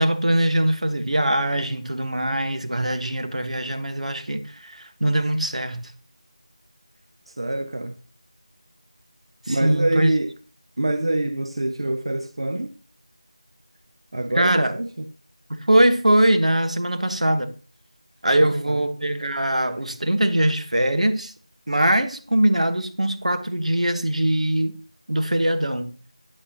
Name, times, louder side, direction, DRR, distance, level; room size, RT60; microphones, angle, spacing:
voice 1, 0.0-5.8 9.5-10.1 14.3-14.7 15.5-17.5 18.2-21.3 21.7-24.8 25.1-25.9, right 1 dB, 85° right, 1.3 m, -22 dB
voice 2, 7.3-7.9 9.5-10.3 10.8-12.7 14.1-15.0 18.4-18.8, right 1 dB, 50° right, 0.6 m, -25 dB
9.5 x 8.8 x 2.9 m
figure-of-eight pair, 175°, 4 cm